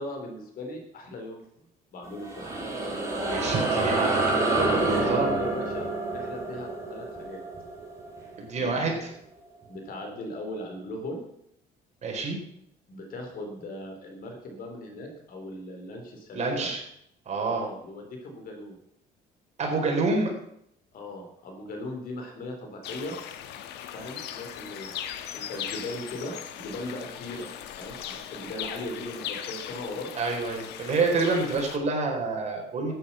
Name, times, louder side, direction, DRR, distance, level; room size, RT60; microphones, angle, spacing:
voice 1, 0.0-1.4 1.9-2.5 4.9-7.4 8.6-9.0 9.7-11.2 12.9-16.7 17.5-18.8 20.9-23.1 23.9-25.0 25.3-27.5 27.8-30.1 31.3-31.5, left 1 dB, 60° left, 3 dB, 4.1 m, -38 dB
sound 1, 2.0-8.9, right 2 dB, 20° right, 5.0 m, -28 dB
voice 2, 3.3-5.3 8.4-9.0 12.0-12.4 16.3-16.8 17.3-17.6 19.6-20.3 30.1-32.9, right 3 dB, 40° right, 1 dB, 4.3 m, -27 dB
sound 2, 22.8-31.8, left 10 dB, 85° left, 1.3 m, -39 dB
13.0 x 9.4 x 5.9 m, 0.73 s
cardioid pair, 110°, 17 cm